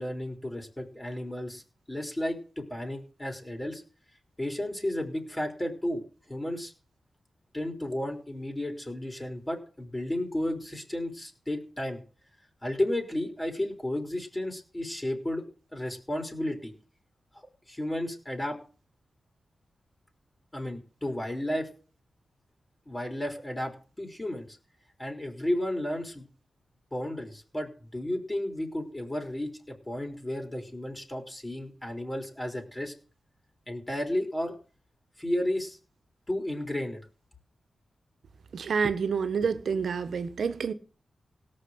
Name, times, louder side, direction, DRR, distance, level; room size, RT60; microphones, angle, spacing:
voice 1, 0.0-1.6 1.9-3.8 4.4-6.7 7.5-12.0 12.6-15.4 15.7-16.7 17.7-18.6 20.5-21.7 22.9-24.6 25.0-26.2 26.9-32.9 33.7-34.5 35.2-35.8 36.3-37.0, left 1 dB, 15° left, 3.9 m, -33 dB
voice 2, 38.5-40.7, right 6 dB, 75° right, 1.3 m, -28 dB
17.5 x 6.6 x 7.9 m
wide cardioid pair, 100°, 0 cm